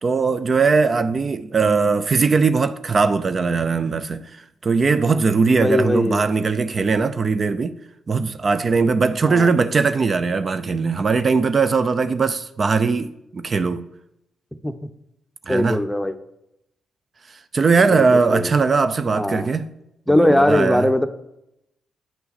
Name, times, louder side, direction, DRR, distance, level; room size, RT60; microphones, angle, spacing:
voice 1, 0.0-4.2 4.6-7.7 8.1-13.8 15.5-15.8 17.5-19.7 20.1-20.9, right 4 dB, 45° right, 0.5 m, -20 dB
voice 2, 5.5-6.2 9.2-9.5 14.6-14.9 15.5-16.1 17.8-18.5 19.1-19.5 20.1-21.1, left 1 dB, 5° left, 0.7 m, -20 dB
8.7 x 5.6 x 4.1 m
hypercardioid pair, 50°, 0 cm